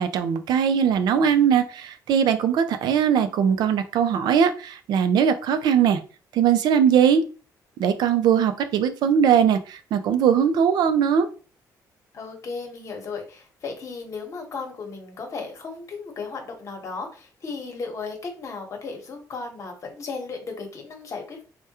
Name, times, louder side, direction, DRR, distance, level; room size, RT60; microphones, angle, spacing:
voice 1, 0.0-6.0 6.3-7.2 7.8-11.3, right 8 dB, 80° right, 9 dB, 0.4 m, -20 dB
voice 2, 12.1-21.4, left 4 dB, 45° left, 2 dB, 1.0 m, -35 dB
3.4 x 2.2 x 2.8 m, 0.36 s
cardioid pair, 125°, 7 cm